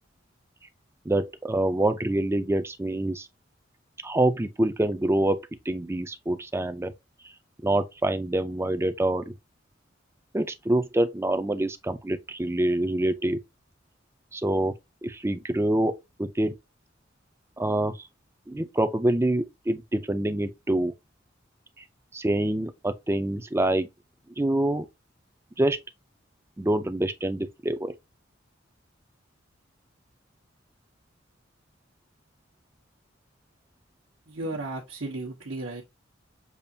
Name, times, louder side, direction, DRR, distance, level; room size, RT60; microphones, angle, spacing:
voice 1, 1.1-3.3 4.0-5.4 5.7-6.9 7.6-9.3 10.3-13.4 14.3-14.8 15.0-15.9 16.2-16.5 17.6-17.9 18.5-20.9 22.1-23.9 24.4-24.9 25.6-25.8 26.6-27.9, right 1 dB, 15° right, 0.5 m, -26 dB
voice 2, 34.3-35.8, right 2 dB, 75° right, 1.1 m, -34 dB
7.0 x 2.4 x 2.7 m
head